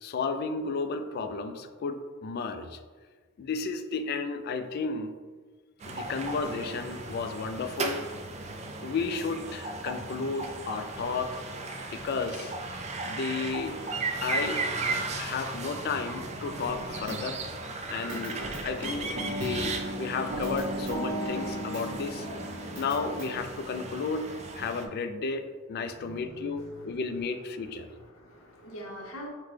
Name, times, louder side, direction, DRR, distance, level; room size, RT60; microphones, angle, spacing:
voice 1, 0.0-2.8 3.4-5.1 5.9-8.1 8.8-11.4 11.9-12.5 13.0-13.8 14.2-14.7 15.2-17.4 17.9-22.3 22.8-24.3 24.6-27.9, left 4 dB, 50° left, 8 dB, 0.3 m, -33 dB
sound 1, 5.8-24.9, right 3 dB, 35° right, 0.3 m, -36 dB
sound 2, 16.6-17.6 18.1-23.3, right 1 dB, 60° right, 0.9 m, -36 dB
voice 2, 25.9-26.9 27.9-29.3, equal, 90° left, -1 dB, 0.8 m, -44 dB
5.7 x 2.1 x 3.2 m, 1.5 s
head